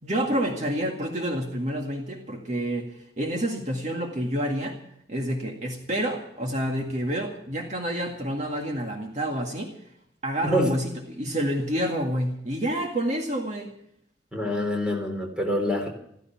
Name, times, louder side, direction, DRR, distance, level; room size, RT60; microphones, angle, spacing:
voice 1, 0.0-4.8 5.1-9.7 10.2-13.7, equal, 40° right, 1 dB, 2.0 m, -28 dB
voice 2, 10.4-10.7 14.3-15.9, equal, 5° right, 2 dB, 3.6 m, -26 dB
15.0 x 15.0 x 5.9 m, 0.74 s
head